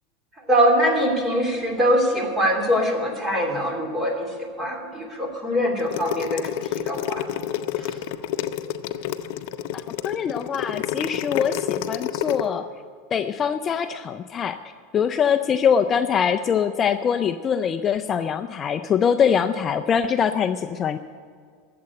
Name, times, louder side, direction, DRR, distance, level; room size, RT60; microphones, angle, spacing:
voice 1, 0.5-7.3 7.8-8.0, equal, 15° right, 2 dB, 2.8 m, -23 dB
sound 1, 5.8-12.4, left 11 dB, 65° left, 0.7 m, -29 dB
voice 2, 9.7-12.7 13.1-14.6 14.9-21.0, left 7 dB, 25° left, 9 dB, 0.4 m, -23 dB
12.5 x 7.7 x 9.6 m, 2.1 s
supercardioid pair, 140°, 0 cm